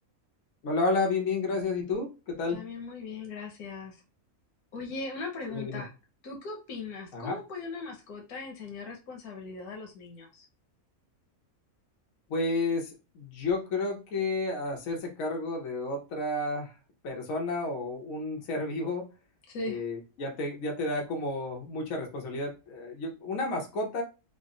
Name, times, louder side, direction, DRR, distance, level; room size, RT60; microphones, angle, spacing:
voice 1, 0.6-2.6 5.5-5.8 7.1-7.4 12.3-12.9 13.1-16.7 17.0-19.1 19.7-24.0, left 2 dB, 65° left, 1 dB, 1.3 m, -31 dB
voice 2, 2.5-4.0 4.7-5.9 6.2-10.4 19.5-19.8, left 3 dB, 85° left, 2 dB, 1.4 m, -39 dB
3.9 x 2.0 x 3.8 m, 0.30 s
omnidirectional pair, 1.5 m